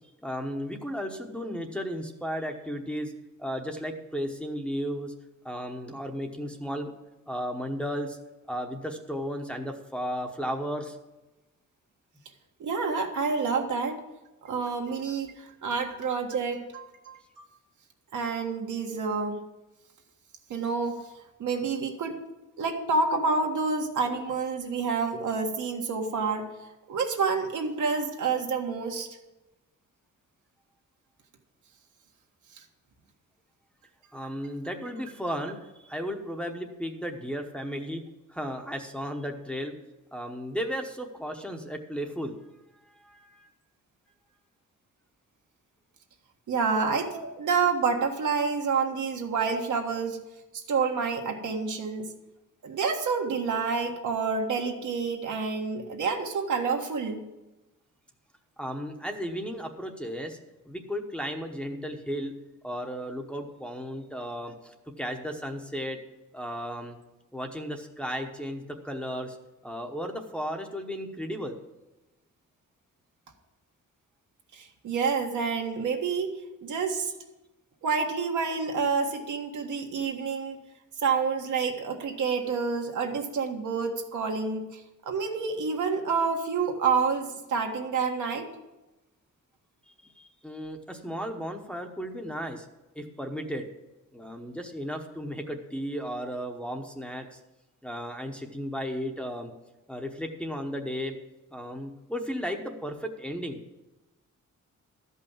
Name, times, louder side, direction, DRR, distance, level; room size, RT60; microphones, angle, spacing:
voice 1, 0.2-3.1 3.4-5.1 5.4-6.9 7.3-8.2 8.5-11.0 34.1-38.0 38.3-39.7 40.1-42.3 42.7-43.5 58.6-60.4 60.6-62.3 62.6-66.0 66.3-67.0 67.3-69.4 69.6-71.6 90.0-92.7 92.9-93.6 94.1-97.4 97.8-99.5 99.9-101.2 101.5-103.6, equal, 5° left, 2 dB, 1.0 m, -34 dB
voice 2, 12.6-14.0 14.4-17.4 18.1-19.4 20.5-21.0 21.4-22.2 22.6-26.5 26.9-29.1 46.5-50.2 50.5-52.1 52.6-57.2 74.5-77.1 77.8-80.6 81.0-88.5, right 5 dB, 75° right, 2 dB, 1.6 m, -28 dB
12.5 x 5.5 x 7.3 m, 1.0 s
cardioid pair, 125°, 30 cm